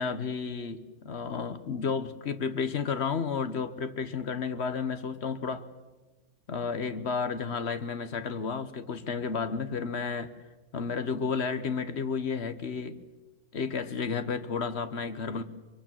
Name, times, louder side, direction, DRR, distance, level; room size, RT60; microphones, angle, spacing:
voice 1, 0.0-5.7 6.5-10.3 10.7-13.0 13.5-15.4, left 5 dB, 45° left, 1.3 m, -32 dB
24.0 x 23.0 x 7.6 m
omnidirectional pair, 1.6 m